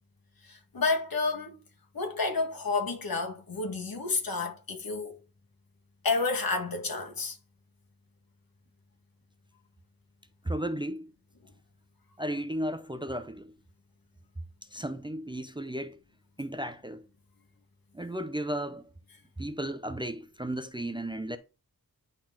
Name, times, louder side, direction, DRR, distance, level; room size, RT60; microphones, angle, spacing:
voice 1, 0.4-1.6 1.9-5.2 6.0-7.4, left 3 dB, 70° left, 1.9 m, -30 dB
voice 2, 10.5-11.1 12.2-13.5 14.7-16.0 16.4-17.0 17.9-18.8 19.4-21.4, right 1 dB, 15° right, 0.6 m, -34 dB
10.0 x 4.0 x 3.8 m
wide cardioid pair, 85°, 36 cm